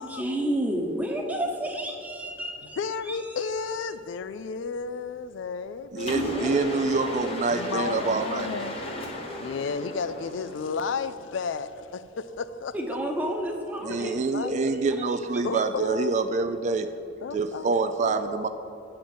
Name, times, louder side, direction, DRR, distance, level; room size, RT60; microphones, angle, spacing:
voice 1, 0.0-2.8 3.0-3.2 12.7-14.7 15.3-15.6, right 1 dB, 10° right, 2 dB, 0.9 m, -31 dB
voice 2, 2.8-6.8 7.5-8.8 9.4-12.8 13.9-14.6 15.4-16.2 17.2-18.5, left 5 dB, 70° left, 13 dB, 0.4 m, -33 dB
voice 3, 5.9-8.5 13.8-16.9 17.3-18.5, right 4 dB, 35° right, 9 dB, 0.3 m, -26 dB
Mechanisms, 6.0-11.1, equal, 30° left, 1.0 m, -34 dB
9.2 x 4.4 x 7.4 m, 2.8 s
head